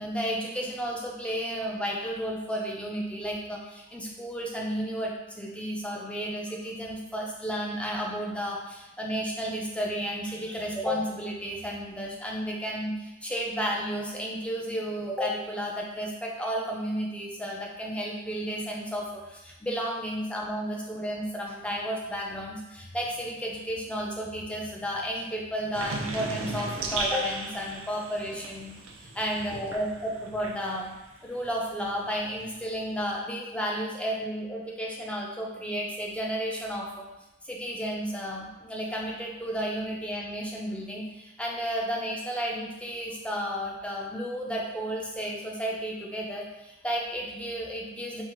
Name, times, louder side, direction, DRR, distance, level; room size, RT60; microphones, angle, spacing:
voice 1, 0.0-30.9 31.2-37.1 37.4-48.2, equal, 5° left, -2 dB, 0.5 m, -32 dB
sound 1, 25.7-31.1 31.4-33.1, right 3 dB, 75° right, 0.6 m, -36 dB
3.7 x 2.4 x 4.4 m, 0.99 s
head